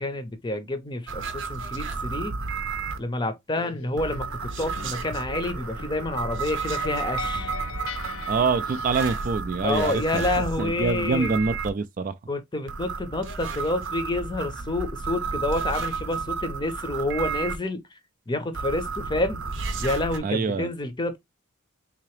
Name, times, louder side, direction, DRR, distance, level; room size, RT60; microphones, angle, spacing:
voice 1, 0.0-2.4 3.0-7.5 9.6-11.3 12.3-18.0 18.3-19.4 19.8-21.2, left 2 dB, 20° left, 0.6 m, -28 dB
sound 1, 1.1-3.0 4.0-11.7 12.7-17.6 18.5-20.2, right 5 dB, 60° right, 0.7 m, -32 dB
sound 2, 3.6-9.1, left 5 dB, 75° left, 0.5 m, -39 dB
voice 2, 8.3-12.1 20.2-20.7, right 4 dB, 40° right, 0.3 m, -26 dB
3.8 x 2.8 x 3.1 m
head